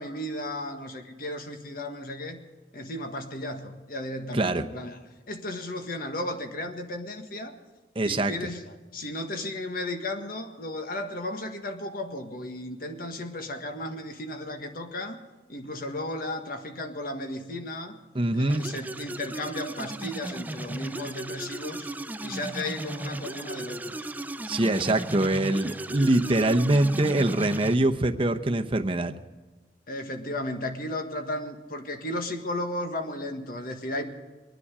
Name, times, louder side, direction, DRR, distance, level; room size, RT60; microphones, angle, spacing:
voice 1, 0.0-2.4 2.7-7.6 8.0-15.2 15.5-18.0 18.3-21.9 22.2-24.1 29.9-34.1, left 1 dB, 55° left, 6 dB, 1.6 m, -34 dB
voice 2, 7.9-8.4 18.1-18.6 24.5-29.1, right 1 dB, 30° right, 6 dB, 0.9 m, -24 dB
sound 1, 18.5-27.7, right 1 dB, 10° right, 0.4 m, -36 dB
23.5 x 9.9 x 5.0 m, 1.3 s
head